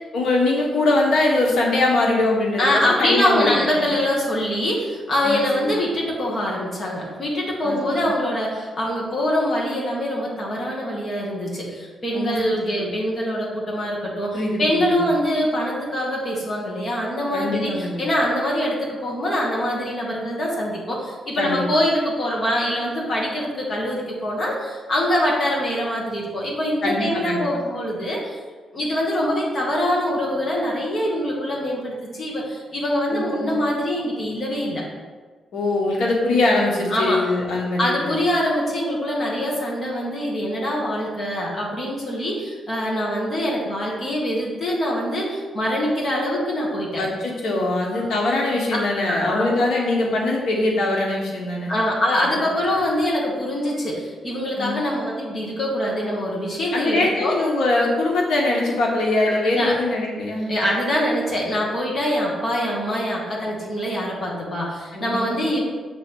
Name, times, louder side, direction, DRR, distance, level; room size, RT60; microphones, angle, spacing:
voice 1, 0.1-3.9 5.2-5.7 7.6-8.1 12.1-12.9 14.3-15.1 17.3-18.0 21.4-21.6 26.8-27.5 33.1-33.5 35.5-38.2 47.0-51.7 52.2-52.4 54.6-54.8 56.7-60.6 64.9-65.4, left 2 dB, 80° left, -2 dB, 1.3 m, -22 dB
voice 2, 2.6-28.4 28.7-34.8 36.9-37.2 37.8-47.0 49.0-49.5 51.7-57.3 59.4-59.8 60.5-65.6, equal, 30° left, -4 dB, 1.7 m, -24 dB
7.5 x 3.5 x 6.3 m, 1.4 s
wide cardioid pair, 175°, 0 cm